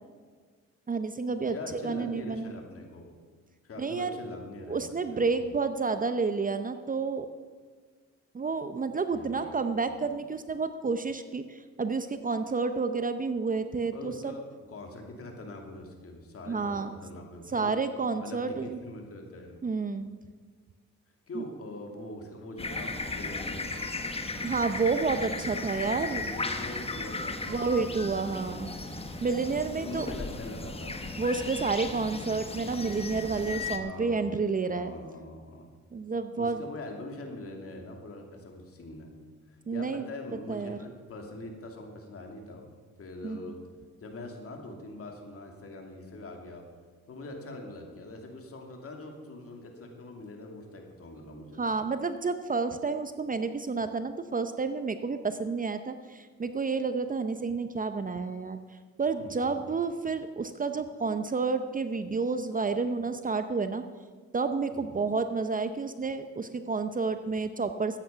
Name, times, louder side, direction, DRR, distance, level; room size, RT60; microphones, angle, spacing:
voice 1, 0.9-2.5 3.8-4.2 4.7-7.3 8.3-14.3 16.5-16.9 17.5-18.8 19.6-20.1 21.3-21.4 24.4-26.3 27.5-28.7 29.2-30.1 31.2-34.9 35.9-36.6 39.7-40.1 40.5-40.9 43.2-43.4 51.6-63.8 64.3-68.0, right 4 dB, 30° right, 10 dB, 0.7 m, -30 dB
voice 2, 1.5-3.1 3.6-5.2 9.1-9.5 9.9-10.1 13.9-17.7 18.2-19.7 21.3-23.6 25.5-28.6 29.8-31.0 33.8-34.3 34.7-35.7 36.4-39.1 39.5-42.7 43.0-43.6 44.0-46.6 47.1-51.6 59.2-59.6 64.7-64.9, left 2 dB, 50° left, 2 dB, 2.6 m, -43 dB
sound 1, 22.6-33.8, left 3 dB, 20° left, 1.1 m, -36 dB
14.0 x 9.0 x 5.8 m, 1.5 s
cardioid pair, 90°, 30 cm